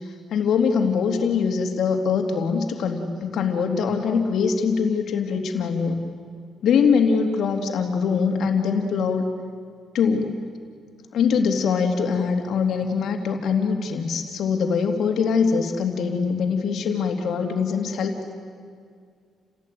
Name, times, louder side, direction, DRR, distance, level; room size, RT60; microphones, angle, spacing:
voice 1, 0.3-6.0 6.6-9.3 9.9-10.3 11.1-18.3, left 5 dB, 70° left, 4 dB, 3.2 m, -23 dB
30.0 x 17.5 x 9.4 m, 2.1 s
cardioid pair, 90°, 0 cm